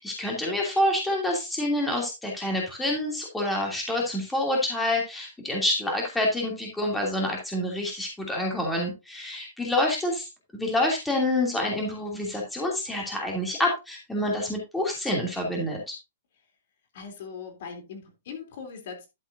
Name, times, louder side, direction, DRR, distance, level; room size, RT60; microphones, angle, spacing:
voice 1, 0.0-15.9, left 1 dB, 5° left, -1 dB, 2.8 m, -27 dB
voice 2, 16.9-19.1, left 6 dB, 55° left, 5 dB, 3.2 m, -40 dB
11.5 x 7.9 x 2.7 m, 0.24 s
hypercardioid pair, 155°, 0 cm